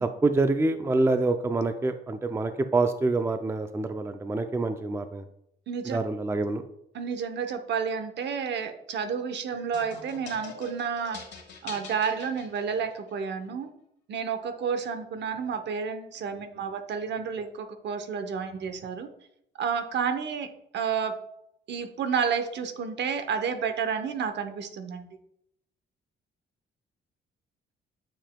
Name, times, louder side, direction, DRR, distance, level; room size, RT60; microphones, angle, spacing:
voice 1, 0.0-5.2 5.8-6.6, right 3 dB, 15° right, 9 dB, 0.4 m, -26 dB
voice 2, 5.7-6.0 6.9-11.2 11.6-13.7 14.1-19.1 19.6-21.1 21.7-25.1, right 6 dB, 60° right, 8 dB, 0.8 m, -30 dB
sound 1, 9.7-13.1, left 4 dB, 60° left, 1.4 m, -44 dB
8.9 x 4.9 x 2.2 m, 0.76 s
cardioid pair, 90°, 20 cm